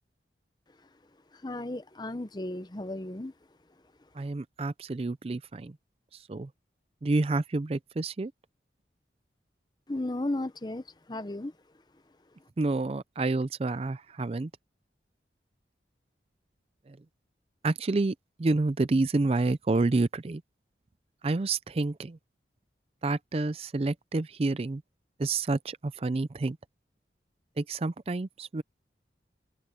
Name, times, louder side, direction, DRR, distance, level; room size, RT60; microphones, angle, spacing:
voice 1, 1.4-3.3 9.9-10.8 11.1-11.5, left 1 dB, 25° left, 0.7 m, -34 dB
voice 2, 4.2-5.7 6.3-6.5 7.0-8.3 12.6-14.5 16.9-17.0 17.6-20.4 21.2-22.2 23.0-24.8 25.2-26.6 27.6-28.6, right 3 dB, 35° right, 0.4 m, -29 dB
open air
head